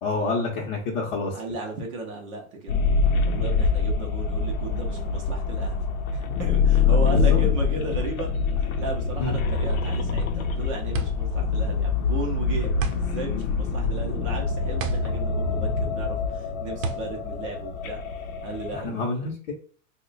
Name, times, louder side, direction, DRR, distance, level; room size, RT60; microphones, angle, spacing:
voice 1, 0.0-1.3 7.3-7.4 9.2-9.3 18.8-19.5, left 3 dB, 45° left, -4 dB, 0.7 m, -27 dB
voice 2, 1.3-2.8 3.3-5.8 6.1-8.3 8.8-18.0 18.4-19.0, right 3 dB, 25° right, 1 dB, 0.5 m, -35 dB
sound 1, 2.7-18.9, left 5 dB, 80° left, 0.7 m, -25 dB
sound 2, 10.2-18.5, right 4 dB, 70° right, 0.6 m, -35 dB
2.9 x 2.1 x 3.8 m, 0.43 s
supercardioid pair, 175°, 41 cm